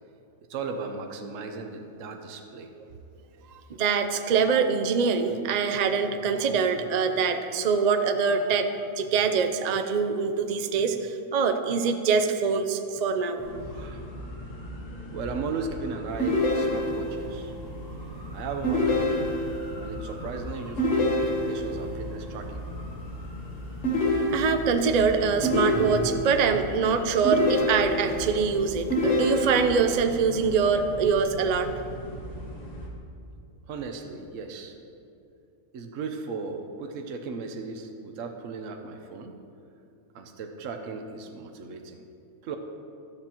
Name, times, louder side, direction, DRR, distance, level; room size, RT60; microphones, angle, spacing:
voice 1, 0.5-2.7 13.7-14.0 15.1-17.5 18.3-19.1 19.8-22.6 33.7-34.7 35.7-39.3 40.1-42.0 42.4-42.6, right 4 dB, 60° right, 4 dB, 1.1 m, -36 dB
voice 2, 3.8-8.7 9.0-13.4 24.3-31.7, right 5 dB, 85° right, 7 dB, 0.3 m, -24 dB
sound 1, 13.4-32.9, equal, 25° left, 1.8 m, -39 dB
sound 2, 16.2-17.2 18.6-19.7 20.8-21.8 23.8-24.8 25.4-26.4 27.2-28.3 28.9-29.9, left 1 dB, 50° left, 1.5 m, -26 dB
13.0 x 12.0 x 3.0 m, 2.6 s
omnidirectional pair, 1.6 m